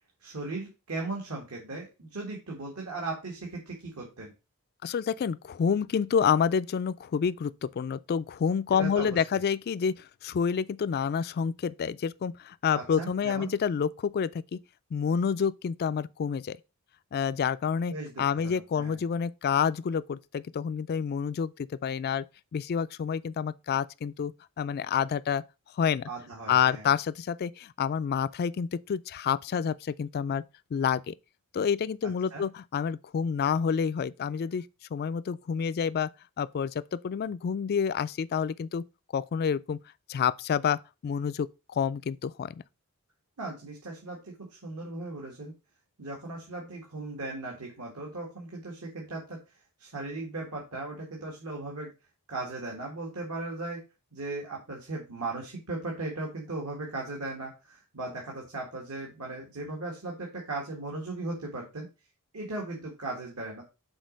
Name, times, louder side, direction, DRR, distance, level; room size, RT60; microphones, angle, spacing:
voice 1, 0.2-4.3 8.8-9.2 12.7-13.5 17.9-19.0 26.1-26.9 32.3-32.4 43.4-45.5 46.0-49.4 49.8-51.9 52.3-53.8 54.1-61.9 62.3-63.6, right 2 dB, 75° right, 1.9 m, -37 dB
voice 2, 4.8-14.6 14.9-16.6 17.1-21.5 21.8-22.2 22.5-25.4 25.8-26.0 26.5-30.4 30.7-31.1 31.5-34.6 34.9-36.1 36.4-38.8 39.1-39.8 40.1-41.5 41.7-42.5, left 7 dB, 45° left, 0.3 m, -28 dB
6.3 x 4.1 x 5.1 m
head